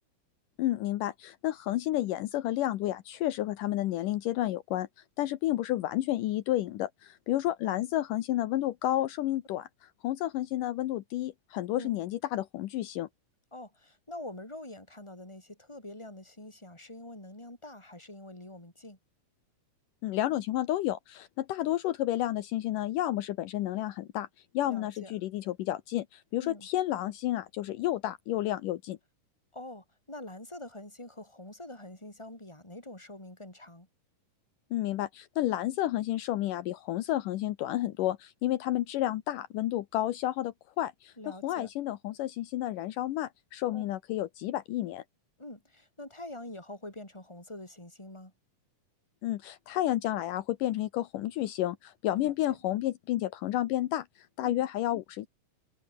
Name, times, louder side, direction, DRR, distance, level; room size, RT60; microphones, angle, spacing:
voice 1, 0.6-4.9 5.2-13.1 20.0-24.3 24.5-29.0 34.7-45.0 49.2-54.1 54.4-55.3, left 14 dB, 75° left, 2.5 m, -31 dB
voice 2, 13.5-19.0 24.6-25.1 26.4-26.7 29.5-33.9 41.2-41.7 43.7-43.8 45.4-48.3 52.1-52.6 54.4-54.5, left 1 dB, 10° left, 5.3 m, -45 dB
omnidirectional pair, 3.9 m